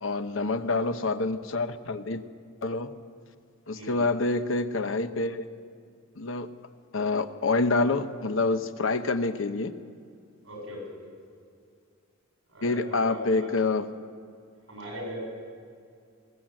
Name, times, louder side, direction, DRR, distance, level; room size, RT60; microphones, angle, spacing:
voice 1, 0.0-2.2 2.6-2.9 3.7-5.5 6.2-6.5 6.9-9.7 12.6-13.9, left 3 dB, 65° left, 10 dB, 0.9 m, -27 dB
voice 2, 3.7-4.1 10.4-11.1 12.5-13.5 14.7-15.2, equal, 65° right, -1 dB, 7.2 m, -39 dB
21.0 x 18.0 x 7.7 m, 2.3 s
head